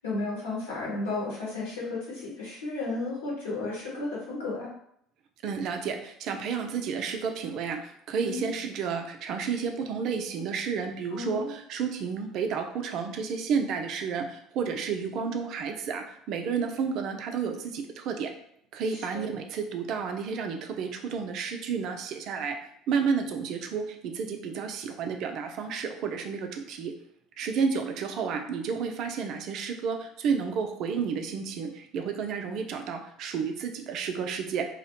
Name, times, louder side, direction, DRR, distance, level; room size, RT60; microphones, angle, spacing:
voice 1, 0.0-4.7 8.2-8.5 11.1-11.5 18.9-19.3, left 3 dB, 80° left, -6 dB, 1.0 m, -33 dB
voice 2, 5.4-18.3 18.7-22.6 22.9-26.9 27.4-34.7, right 6 dB, 55° right, 5 dB, 0.4 m, -31 dB
2.4 x 2.1 x 2.9 m, 0.71 s
figure-of-eight pair, 60°, 0 cm